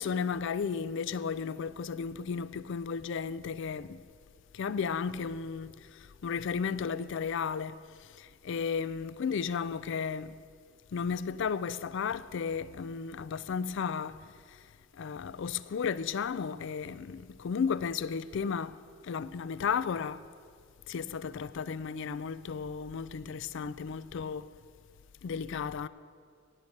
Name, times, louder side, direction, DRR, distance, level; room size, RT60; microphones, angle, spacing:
voice 1, 0.0-4.0 4.5-7.8 8.0-10.3 10.9-14.2 14.5-14.6 15.0-20.2 20.9-24.5 25.2-25.9, left 6 dB, 65° left, 0.4 m, -34 dB
17.5 x 8.0 x 5.4 m
head